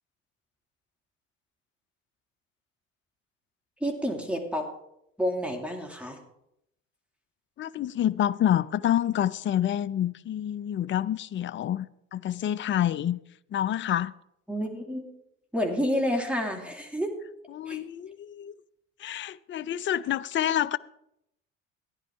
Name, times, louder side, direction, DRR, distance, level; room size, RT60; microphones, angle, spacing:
voice 1, 3.8-4.6 5.2-6.2 14.5-15.0 15.5-17.1 17.7-17.8, equal, 5° right, 2.4 m, -29 dB
voice 2, 7.6-11.9 12.1-13.2 13.5-14.1 17.5-18.5 19.0-20.8, left 11 dB, 30° left, 0.5 m, -27 dB
14.5 x 10.5 x 3.7 m
hypercardioid pair, 65°, 38 cm